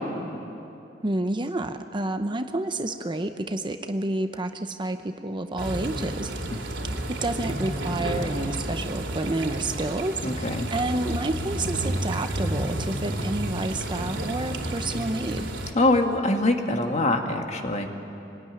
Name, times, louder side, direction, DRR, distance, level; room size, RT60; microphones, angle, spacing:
voice 1, 1.0-6.3 7.2-15.5, right 2 dB, 25° right, 7 dB, 0.8 m, -29 dB
sound 1, 5.6-15.7, right 1 dB, 90° right, 2.9 m, -31 dB
voice 2, 10.2-10.7 15.8-17.9, left 2 dB, 40° left, 4 dB, 1.9 m, -23 dB
24.5 x 19.0 x 9.9 m, 2.8 s
head